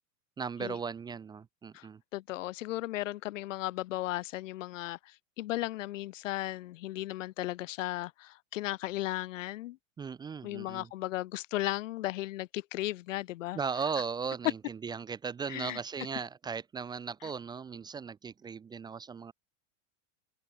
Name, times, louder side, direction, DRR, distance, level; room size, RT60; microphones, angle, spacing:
voice 1, 0.4-2.0 10.0-10.9 13.5-19.3, right 6 dB, 10° right, 1.1 m, -37 dB
voice 2, 2.1-9.8 10.4-13.6 15.5-15.8 17.2-17.3, left 16 dB, 70° left, 2.4 m, -36 dB
open air
supercardioid pair, 175°, 39 cm